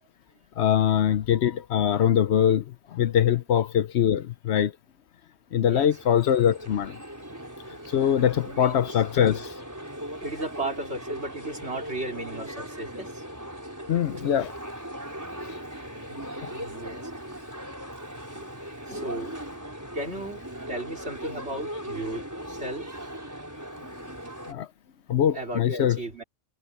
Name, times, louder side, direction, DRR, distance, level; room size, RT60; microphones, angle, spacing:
voice 1, 0.6-4.7 5.5-7.0 7.9-9.5 13.9-14.5 24.5-24.7 25.1-26.0, left 9 dB, 70° left, 0.9 m, -23 dB
sound 1, 5.7-24.5, equal, 15° right, 4.7 m, -39 dB
voice 2, 8.4-9.0 10.2-13.2 16.0-17.1 18.3-19.3 19.9-20.4 20.7-23.0 25.3-26.2, right 2 dB, 60° right, 4.0 m, -35 dB
omnidirectional pair, 1.2 m